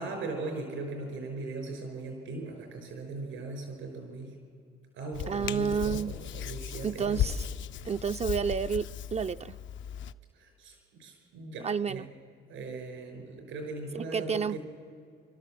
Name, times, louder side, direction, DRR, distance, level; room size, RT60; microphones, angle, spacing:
voice 1, 0.0-4.3 4.9-7.2 10.3-12.1 12.5-14.6, right 3 dB, 90° right, 3 dB, 5.4 m, -39 dB
Hands, 5.1-10.1, left 10 dB, 70° left, 0.5 m, -36 dB
voice 2, 5.3-6.1 6.8-7.5 7.8-9.6 11.6-12.1 13.9-14.6, right 6 dB, 35° right, 10 dB, 0.4 m, -30 dB
27.0 x 12.5 x 7.6 m, 2.4 s
cardioid pair, 90°, 20 cm